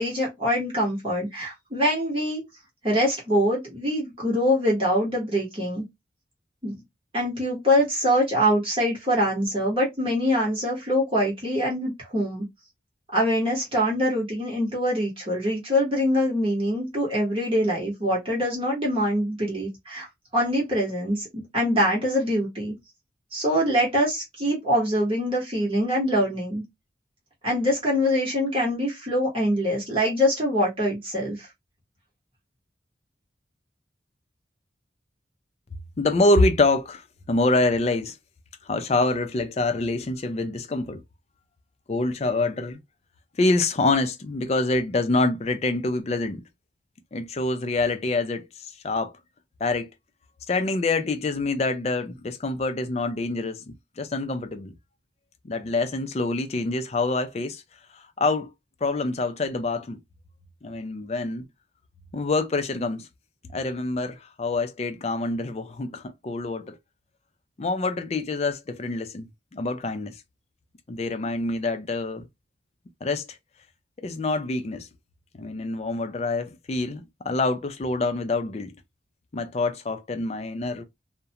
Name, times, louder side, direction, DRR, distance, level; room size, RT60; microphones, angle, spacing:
voice 1, 0.0-2.4 2.8-5.8 6.6-6.7 7.1-12.4 13.1-20.1 20.3-22.7 23.3-26.6 27.4-31.5, equal, 30° right, 1.0 m, -24 dB
voice 2, 36.0-38.2 38.7-41.0 41.9-42.8 43.4-46.4 47.1-49.1 49.6-49.9 50.5-54.7 55.4-57.6 57.9-58.5 58.8-60.0 60.6-61.4 62.1-63.1 63.5-66.8 67.6-70.1 70.9-72.3 73.0-73.4 74.0-74.9 75.3-78.7 79.3-80.8, left 2 dB, 35° left, 0.4 m, -26 dB
2.4 x 2.1 x 2.8 m
head